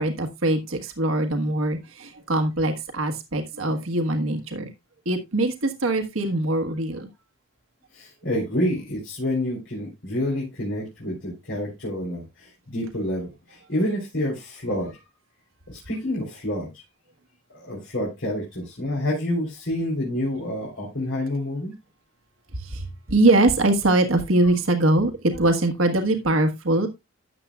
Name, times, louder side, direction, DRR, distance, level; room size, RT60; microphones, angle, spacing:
voice 1, 0.0-4.7 5.0-7.1 22.6-22.8 23.1-26.9, right 2 dB, 75° right, 6 dB, 1.5 m, -22 dB
voice 2, 7.9-15.0 15.7-16.7 17.5-21.7, left 1 dB, 60° left, -5 dB, 3.8 m, -28 dB
13.0 x 8.1 x 2.4 m, 0.21 s
head